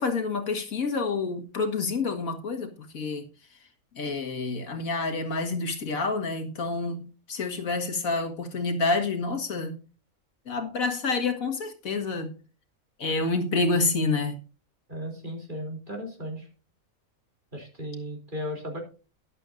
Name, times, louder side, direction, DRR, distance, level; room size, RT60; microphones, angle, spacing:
voice 1, 0.0-3.3 4.0-9.8 10.5-12.3 13.0-14.4, left 3 dB, 80° left, 5 dB, 2.2 m, -28 dB
voice 2, 14.9-16.5 17.5-18.8, equal, 35° right, 2 dB, 3.5 m, -36 dB
13.5 x 11.0 x 2.6 m, 0.35 s
omnidirectional pair, 1.4 m